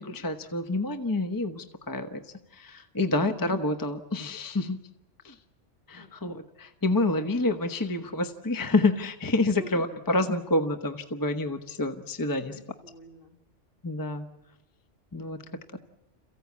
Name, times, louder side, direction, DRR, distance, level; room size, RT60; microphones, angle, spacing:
voice 1, 0.0-4.8 5.2-5.4 5.9-12.5 13.8-14.3 15.1-15.4, left 2 dB, 20° left, 7 dB, 0.9 m, -28 dB
voice 2, 9.5-10.0 12.5-13.4 15.2-15.8, equal, 50° left, 4 dB, 1.8 m, -49 dB
28.0 x 15.5 x 8.4 m, 0.97 s
omnidirectional pair, 1.2 m